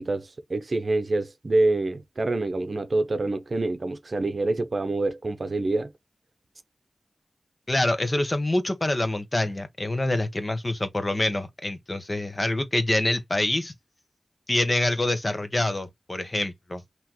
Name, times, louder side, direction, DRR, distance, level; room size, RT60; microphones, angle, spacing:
voice 1, 0.0-5.9, right 2 dB, 60° right, 0.7 m, -26 dB
voice 2, 7.7-13.7 14.5-16.8, left 1 dB, 35° left, 1.2 m, -26 dB
5.6 x 3.0 x 3.0 m
wide cardioid pair, 65°, 0 cm